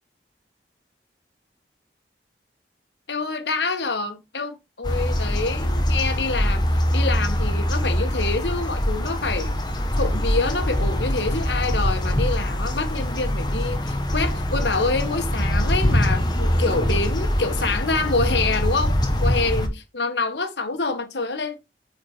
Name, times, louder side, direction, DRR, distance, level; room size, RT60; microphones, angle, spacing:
voice 1, 3.1-9.6 10.0-21.6, left 3 dB, 80° left, 1.7 m, -26 dB
sound 1, 4.8-19.7, equal, 25° left, 1.4 m, -23 dB
8.8 x 5.1 x 4.6 m
head